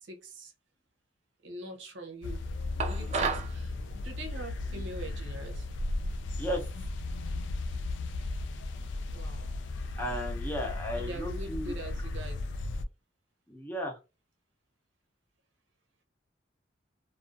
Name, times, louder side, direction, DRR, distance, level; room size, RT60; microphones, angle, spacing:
voice 1, 0.0-0.5 1.4-2.4 2.8-5.7 9.1-9.9 10.9-12.4, right 1 dB, 70° right, 0.7 m, -43 dB
sound 1, 2.2-12.8, left 2 dB, 65° left, 0.3 m, -35 dB
sound 2, 2.8-3.5, right 5 dB, 35° right, 0.4 m, -31 dB
voice 2, 10.0-11.7 13.5-14.0, equal, 10° left, 0.6 m, -34 dB
2.4 x 2.3 x 2.5 m
head